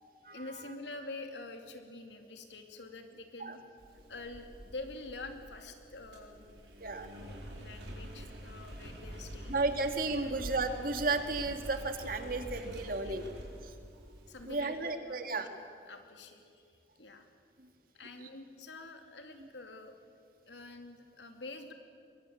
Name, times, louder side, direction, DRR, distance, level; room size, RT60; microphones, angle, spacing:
voice 1, 0.3-3.6 4.1-6.4 7.1-9.6 10.2-10.4 13.0-13.1 14.3-15.5 15.9-17.3 17.9-19.9 20.5-21.7, left 2 dB, 85° left, 5 dB, 2.8 m, -47 dB
Engine, 3.8-14.7, equal, 80° right, 5.1 m, -47 dB
voice 2, 9.5-13.2 13.6-13.7 14.4-15.5 19.4-19.5, right 3 dB, 55° right, 7 dB, 2.0 m, -33 dB
23.0 x 23.0 x 8.5 m, 2.3 s
head